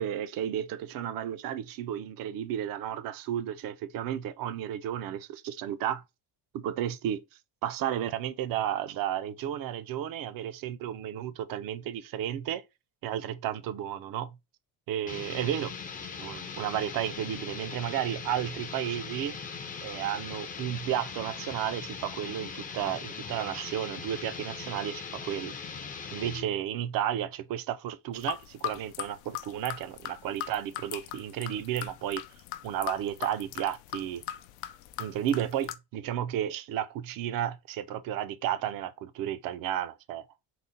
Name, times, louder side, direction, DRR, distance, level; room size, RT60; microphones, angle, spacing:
voice 1, 0.0-6.0 6.5-7.2 7.6-12.6 13.0-14.4 14.9-15.7 16.2-25.5 26.1-32.2 32.6-34.2 35.0-40.3, right 10 dB, 55° right, 0.4 m, -33 dB
sound 1, 15.0-26.5, left 5 dB, 20° left, 0.4 m, -40 dB
sound 2, 28.2-35.8, left 13 dB, 85° left, 0.6 m, -39 dB
4.0 x 2.1 x 3.7 m
cardioid pair, 145°, 43 cm